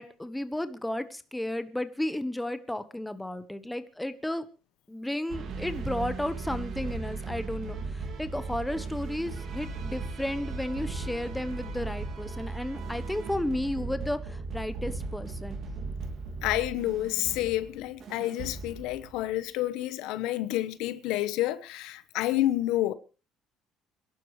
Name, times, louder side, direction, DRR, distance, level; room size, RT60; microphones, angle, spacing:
voice 1, 0.0-4.4 4.9-15.6, left 1 dB, 5° left, 1.2 m, -33 dB
sound 1, 5.3-19.3, right 3 dB, 55° right, 2.4 m, -37 dB
voice 2, 16.4-22.9, left 15 dB, 85° left, 1.0 m, -29 dB
26.5 x 11.5 x 3.2 m
cardioid pair, 125°, 0 cm